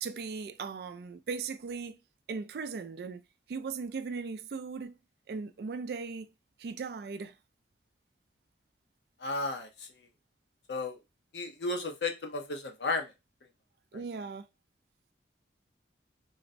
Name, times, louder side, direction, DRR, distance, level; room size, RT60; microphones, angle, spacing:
voice 1, 0.0-2.0 2.3-3.2 3.5-5.0 5.3-6.3 6.6-7.3 13.9-14.5, right 5 dB, 55° right, 0.3 m, -38 dB
voice 2, 9.2-9.9 10.7-11.0 11.3-13.1, left 3 dB, 70° left, 0.7 m, -33 dB
3.9 x 2.1 x 2.5 m
head